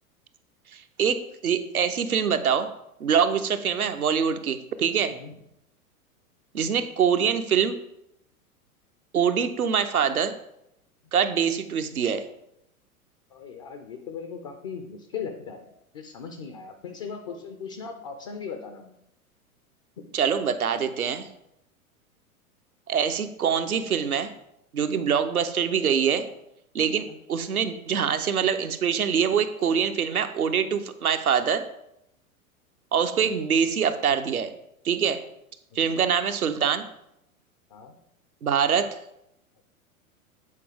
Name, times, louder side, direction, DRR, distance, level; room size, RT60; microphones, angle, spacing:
voice 1, 0.7-2.7 3.0-5.2 6.5-7.8 9.1-10.4 11.1-12.2 20.1-21.3 22.9-24.3 24.7-26.2 26.7-31.6 32.9-34.5 34.8-35.2 35.8-36.8 38.4-39.0, right 7 dB, 80° right, 9 dB, 0.7 m, -24 dB
voice 2, 13.3-15.7 15.9-18.9 20.0-20.1 27.1-27.2 33.2-33.4 35.7-36.0 37.7-37.9, left 6 dB, 25° left, 5 dB, 0.3 m, -38 dB
8.3 x 4.4 x 3.5 m, 0.80 s
figure-of-eight pair, 95°, 43 cm